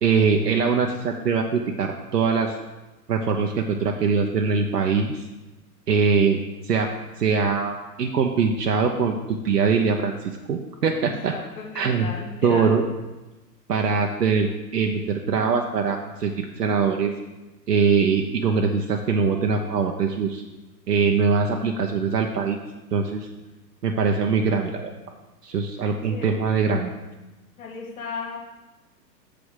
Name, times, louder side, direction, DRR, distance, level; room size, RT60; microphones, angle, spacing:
voice 1, 0.0-2.6 3.1-5.2 5.9-6.9 7.2-11.3 11.7-12.1 12.4-12.8 13.7-14.5 14.7-17.1 17.7-20.4 20.9-22.6 22.9-23.3 23.8-24.9 25.4-26.9, right 5 dB, 70° right, 2 dB, 0.8 m, -22 dB
voice 2, 11.0-12.7 26.1-26.3 27.6-28.4, left 5 dB, 55° left, -2 dB, 2.1 m, -35 dB
6.9 x 5.0 x 6.2 m, 1.1 s
figure-of-eight pair, 105°, 50 cm